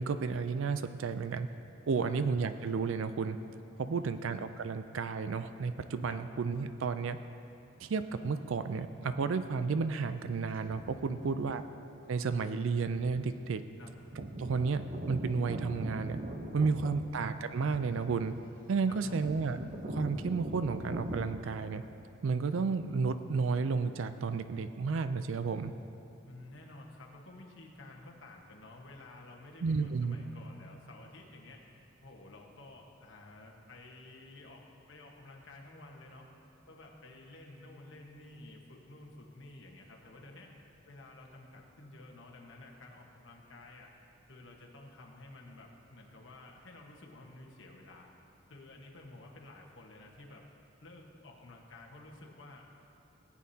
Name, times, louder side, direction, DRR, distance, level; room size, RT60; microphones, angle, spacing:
voice 1, 0.0-1.5 1.9-3.4 3.8-7.2 7.8-11.6 12.1-13.6 14.4-16.2 16.5-18.3 18.7-19.6 19.9-21.8 22.2-25.7 29.6-30.2, right 4 dB, 70° right, 11 dB, 0.4 m, -32 dB
voice 2, 3.8-4.2 6.1-6.2 11.1-11.6 13.8-13.9 16.7-17.3 18.9-19.3 26.2-31.7 32.0-36.3 36.7-40.6 40.9-43.9 44.3-48.1 48.5-50.4 50.8-52.7, left 2 dB, 65° left, -1 dB, 1.3 m, -51 dB
sound 1, 10.7-11.1 12.2-12.3 12.9-13.3 13.6-13.7 13.9-21.3, right 1 dB, 45° right, 0.7 m, -41 dB
17.0 x 8.5 x 2.8 m, 2.8 s
head